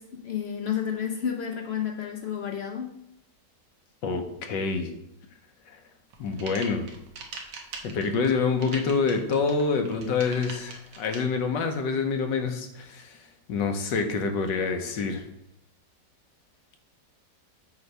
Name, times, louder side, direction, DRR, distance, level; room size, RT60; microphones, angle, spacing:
voice 1, 0.0-2.9, left 8 dB, 60° left, 2 dB, 0.6 m, -31 dB
voice 2, 4.0-4.9 5.7-5.8 6.2-6.9 7.8-13.2 13.5-15.2, left 4 dB, 80° left, 5 dB, 1.5 m, -27 dB
sound 1, 6.1-11.2, right 4 dB, 75° right, 1.7 m, -41 dB
7.9 x 3.0 x 5.3 m, 0.81 s
omnidirectional pair, 1.9 m